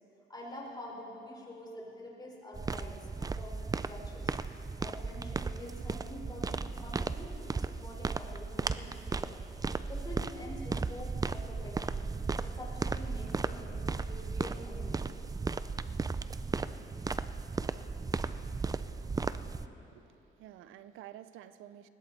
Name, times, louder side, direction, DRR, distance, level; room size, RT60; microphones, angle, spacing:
voice 1, 0.3-4.4 4.8-9.4 9.9-12.1 12.4-15.2, left 1 dB, 20° left, -3 dB, 4.3 m, -47 dB
sound 1, 2.5-19.7, right 4 dB, 20° right, 0.4 m, -35 dB
voice 2, 19.9-21.9, right 12 dB, 90° right, 13 dB, 0.5 m, -51 dB
20.0 x 15.5 x 4.1 m, 2.9 s
cardioid pair, 90°, 20 cm